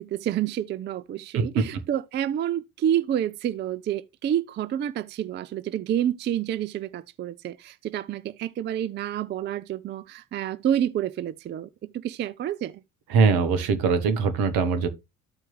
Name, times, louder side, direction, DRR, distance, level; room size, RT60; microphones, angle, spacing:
voice 1, 0.0-12.8, right 10 dB, 30° right, 0.4 m, -29 dB
voice 2, 13.1-14.9, right 5 dB, 65° right, 1.1 m, -22 dB
13.0 x 4.5 x 3.0 m
hypercardioid pair, 50°, 39 cm